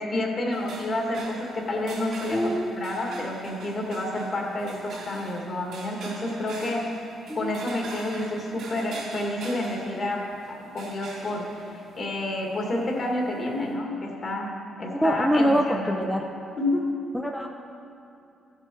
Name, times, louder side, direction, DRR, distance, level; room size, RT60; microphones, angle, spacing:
voice 1, 0.0-6.9 7.3-11.6 11.9-16.0 16.6-16.9, left 1 dB, 45° left, 0 dB, 1.9 m, -29 dB
sound 1, 0.5-13.7, right 3 dB, 70° right, 2.7 m, -44 dB
voice 2, 2.3-2.7 7.3-7.5 14.9-16.2 17.1-17.5, equal, ahead, 2 dB, 0.6 m, -24 dB
14.5 x 6.8 x 4.6 m, 2.6 s
cardioid pair, 90°, 0 cm